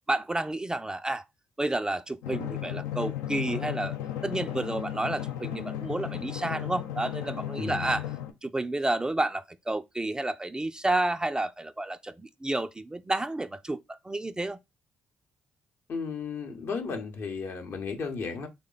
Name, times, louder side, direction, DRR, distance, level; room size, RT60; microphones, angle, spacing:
voice 1, 0.1-1.3 1.6-4.0 4.2-8.0 8.4-14.6, right 2 dB, 15° right, 0.3 m, -30 dB
Drum, 2.2-8.3, left 11 dB, 80° left, 0.4 m, -35 dB
voice 2, 7.6-8.0 15.9-18.5, left 5 dB, 60° left, 0.8 m, -34 dB
3.2 x 2.1 x 3.7 m
hypercardioid pair, 45°, 5 cm